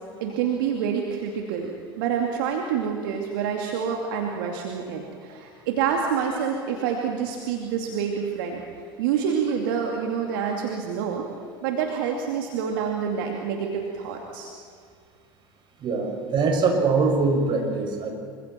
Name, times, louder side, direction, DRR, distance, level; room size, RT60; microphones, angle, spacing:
voice 1, 0.2-8.6 9.0-11.3 11.6-14.5, right 7 dB, 65° right, 1 dB, 2.5 m, -27 dB
voice 2, 15.8-18.1, right 4 dB, 40° right, 2 dB, 6.6 m, -23 dB
27.5 x 25.0 x 4.5 m, 2.2 s
hypercardioid pair, 80°, 12 cm